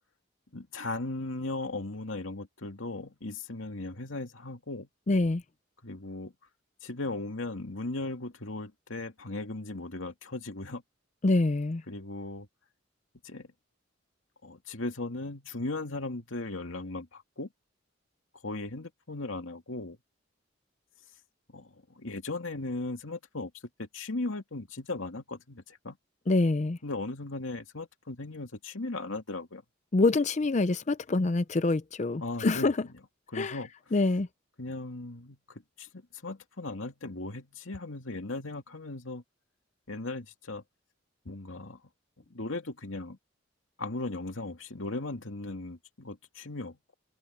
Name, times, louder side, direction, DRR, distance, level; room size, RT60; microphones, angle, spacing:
voice 1, 0.5-4.9 5.8-6.3 6.8-10.8 11.9-12.5 13.2-13.5 14.4-17.5 18.4-20.0 21.5-21.7 21.9-23.5 23.8-26.0 26.8-29.6 32.2-32.7 33.3-33.7 34.6-35.4 35.8-39.2 39.9-40.6 41.3-41.8 42.3-43.2 43.8-46.9, left 2 dB, 90° left, 2.3 m, -37 dB
voice 2, 5.1-5.4 11.2-11.8 26.3-26.8 29.9-32.9 33.3-33.6 33.9-34.3, left 2 dB, 35° left, 0.5 m, -26 dB
open air
head